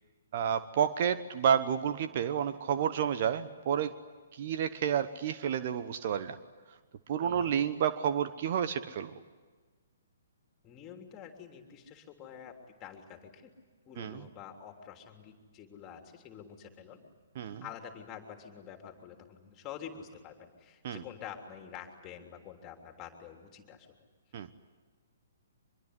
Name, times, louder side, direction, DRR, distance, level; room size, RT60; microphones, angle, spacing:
voice 1, 0.3-3.9 4.3-6.4 7.1-9.1 14.0-14.2 17.4-17.6 20.8-21.0 24.3-24.5, right 8 dB, 45° right, 11 dB, 1.1 m, -30 dB
voice 2, 7.2-7.5 10.6-13.5 13.8-17.0 17.6-24.0, left 8 dB, 20° left, 4 dB, 3.3 m, -47 dB
25.0 x 23.0 x 9.8 m, 1.4 s
figure-of-eight pair, 125°, 0 cm